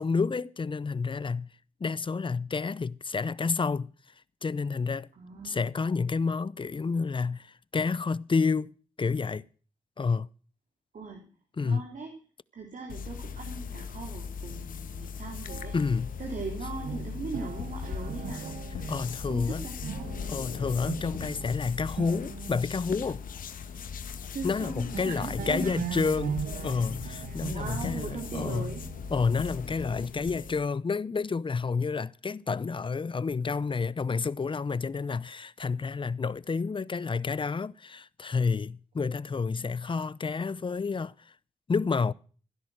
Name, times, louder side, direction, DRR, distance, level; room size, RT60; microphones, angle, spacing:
voice 1, 0.0-1.5 1.8-3.9 4.4-5.1 5.4-9.5 10.0-10.3 11.6-11.8 15.7-16.1 18.9-19.7 20.3-23.2 24.4-28.7 29.1-41.3 41.7-42.1, left 4 dB, 35° left, 0.8 m, -29 dB
voice 2, 5.1-5.7 10.9-11.3 11.6-12.1 12.5-15.7 16.2-18.6 19.3-20.2 24.3-25.7 26.5-26.7 27.5-28.8, right 4 dB, 65° right, 3.4 m, -39 dB
sound 1, 12.9-30.7, left 6 dB, 80° left, 1.4 m, -39 dB
sound 2, 15.5-23.2 23.8-23.9 24.2-24.7 24.9-30.5, right 8 dB, 80° right, 0.7 m, -41 dB
16.0 x 10.5 x 6.4 m
cardioid pair, 55°, 14 cm